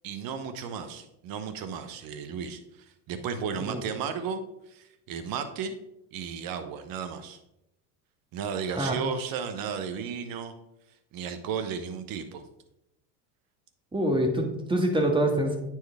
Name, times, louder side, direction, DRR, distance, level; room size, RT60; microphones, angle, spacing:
voice 1, 0.0-2.6 3.1-4.4 4.7-5.7 6.1-7.4 8.3-10.5 11.1-12.4, right 6 dB, 45° right, 8 dB, 1.1 m, -34 dB
voice 2, 13.9-15.6, right 1 dB, 10° right, 2 dB, 1.5 m, -25 dB
9.3 x 4.5 x 3.6 m, 0.85 s
hypercardioid pair, 95°, 49 cm